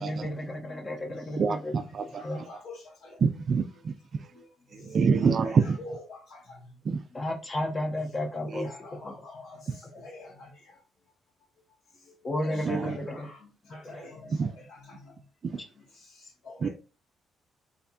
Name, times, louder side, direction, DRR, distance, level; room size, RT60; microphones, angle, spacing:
voice 1, 0.0-1.7 2.2-2.4 7.1-8.7 9.0-9.1 12.2-13.3 13.7-14.1, left 1 dB, 30° left, 0.9 m, -32 dB
voice 2, 1.4-2.2 3.2-3.9 4.7-5.8 6.9-7.0 8.5-8.6 12.5-13.0 14.3-14.5 15.4-15.6 16.6-16.7, right 5 dB, 50° right, 0.4 m, -26 dB
voice 3, 2.1-2.8 5.2-6.4 8.4-9.6 9.9-10.5 12.4-13.3 13.7-14.5 16.4-16.7, left 2 dB, 70° left, 1.8 m, -45 dB
4.2 x 2.8 x 2.8 m
cardioid pair, 90°, 0 cm